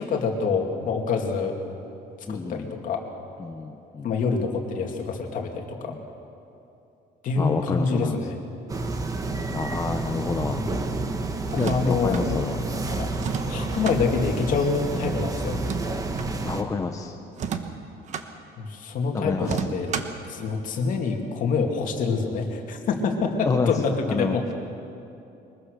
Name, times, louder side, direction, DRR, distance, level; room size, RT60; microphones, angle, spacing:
voice 1, 0.0-1.6 2.3-3.0 4.0-5.9 7.2-8.4 10.4-10.7 11.5-12.4 12.9-13.1 13.5-15.6 18.6-19.9 20.3-24.4, left 4 dB, 50° left, 2 dB, 2.6 m, -26 dB
voice 2, 2.3-2.7 3.4-4.1 5.8-6.0 7.4-8.2 9.5-10.6 11.6-12.6 16.4-17.2 19.1-19.6 23.5-23.7 24.1-24.4, left 4 dB, 20° left, 5 dB, 0.7 m, -28 dB
sound 1, 8.7-16.6, right 3 dB, 20° right, 1.3 m, -29 dB
sound 2, 11.5-12.3 13.1-14.0 15.5-16.3 17.3-18.3 19.4-20.2, right 7 dB, 40° right, 1.3 m, -32 dB
23.0 x 21.5 x 6.7 m, 2.8 s
cardioid pair, 165°, 18 cm